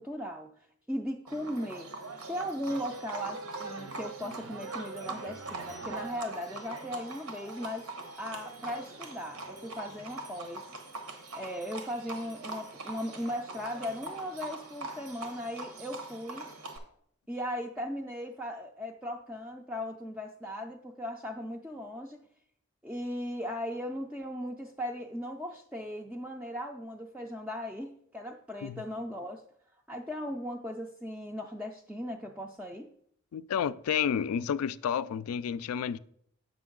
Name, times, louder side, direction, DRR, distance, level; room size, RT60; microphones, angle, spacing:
voice 1, 0.0-1.9 2.3-7.9 8.2-10.7 11.3-16.5 17.3-22.3 22.8-29.4 29.9-32.9, equal, 5° right, 0.3 m, -38 dB
Livestock farm animals working animals, 1.3-16.8, right 2 dB, 90° right, 1.1 m, -42 dB
sound 1, 2.7-6.3, right 4 dB, 60° right, 0.5 m, -45 dB
voice 2, 33.3-36.0, left 8 dB, 85° left, 0.3 m, -30 dB
7.7 x 6.1 x 3.7 m
head